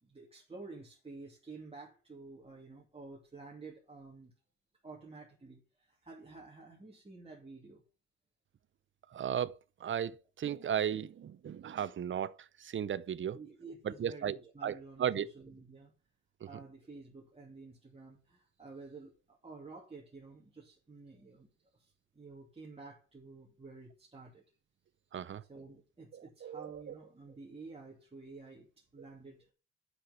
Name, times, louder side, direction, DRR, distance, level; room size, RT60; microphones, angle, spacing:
voice 1, 0.0-4.3 4.8-7.8 11.6-11.7 13.3-15.9 16.5-24.4 25.5-29.5, right 3 dB, 20° right, 2.7 m, -51 dB
voice 2, 9.1-9.5 9.8-13.4 13.8-14.4 14.6-14.7 15.0-15.3 25.1-25.4 26.1-26.8, right 9 dB, 40° right, 0.7 m, -35 dB
8.1 x 6.0 x 7.1 m
cardioid pair, 90°, 30 cm